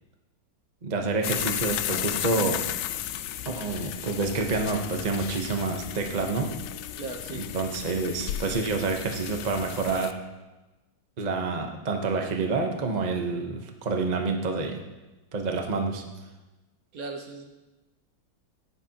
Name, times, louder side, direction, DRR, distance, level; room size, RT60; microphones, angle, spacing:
voice 1, 0.8-2.6 3.5-6.5 7.3-10.1 11.2-14.8 15.3-16.0, right 3 dB, 30° right, 3 dB, 0.8 m, -28 dB
sound 1, 1.2-10.1, left 11 dB, 80° left, 1.2 m, -34 dB
voice 2, 7.0-7.5 16.9-17.4, right 3 dB, 60° right, 4 dB, 1.4 m, -37 dB
16.0 x 10.0 x 2.9 m, 1.1 s
omnidirectional pair, 1.9 m